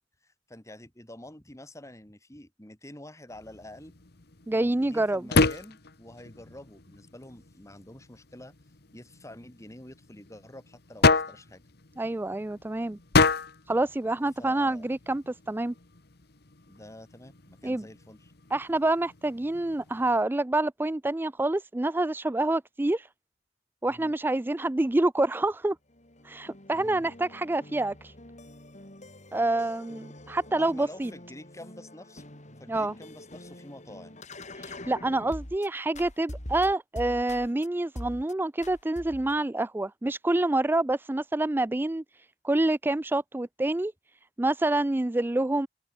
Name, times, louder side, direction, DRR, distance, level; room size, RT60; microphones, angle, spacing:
voice 1, 0.2-3.9 4.6-8.5 8.9-11.6 14.4-14.9 16.7-18.3 23.9-24.1 26.7-27.1 30.6-32.2 32.6-34.2, left 1 dB, 15° left, 3.2 m, -48 dB
sound 1, 3.3-20.2, left 3 dB, 55° left, 1.6 m, -31 dB
voice 2, 4.5-5.2 12.0-13.0 13.7-15.7 17.6-17.8 18.5-23.1 23.8-25.8 26.2-28.1 29.3-31.1 32.7-32.9 34.6-43.9 44.4-45.7, right 2 dB, 10° right, 0.4 m, -27 dB
sound 2, 25.9-35.7 35.9-37.7 38.0-38.3 38.6-39.4, left 1 dB, 40° left, 5.5 m, -44 dB
open air
head